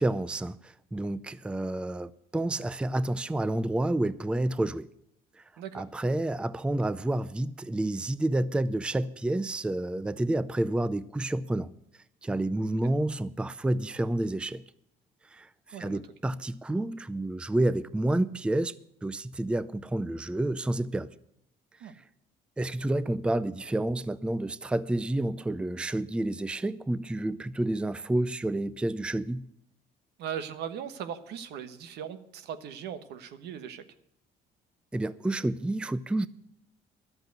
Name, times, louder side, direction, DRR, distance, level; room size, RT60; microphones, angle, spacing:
voice 1, 0.0-4.9 5.4-5.5 5.7-11.7 12.2-14.6 15.3-18.7 19.0-21.1 21.8-21.9 22.6-29.4 34.9-36.3, right 1 dB, 5° right, 0.4 m, -29 dB
voice 2, 5.6-5.9 15.7-16.0 21.8-21.9 30.2-33.8, right 8 dB, 80° right, 1.2 m, -39 dB
12.0 x 8.0 x 9.3 m
cardioid pair, 110°, 17 cm